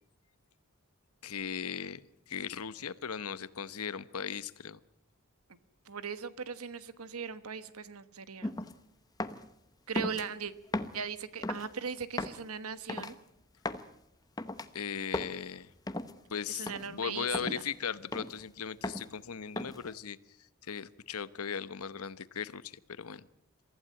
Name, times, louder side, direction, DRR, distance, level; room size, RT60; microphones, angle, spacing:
voice 1, 1.2-2.0 2.3-4.8 14.7-15.7 16.3-20.2 20.6-23.3, left 7 dB, 85° left, 16 dB, 0.9 m, -38 dB
voice 2, 5.9-8.5 9.9-10.5 10.9-13.2 16.6-17.6, right 6 dB, 90° right, 13 dB, 1.3 m, -39 dB
sound 1, 8.4-8.7 9.2-9.5 10.0-10.2 10.7-11.0 11.4-11.7 12.2-12.4 12.9-13.1 13.6-13.9 14.4-14.7 15.1-15.4 15.9-16.1 16.7-16.9 17.3-17.6 18.1-18.4 18.8-19.1 19.6-19.9, left 2 dB, 15° left, 0.9 m, -36 dB
23.5 x 15.0 x 8.8 m, 0.82 s
head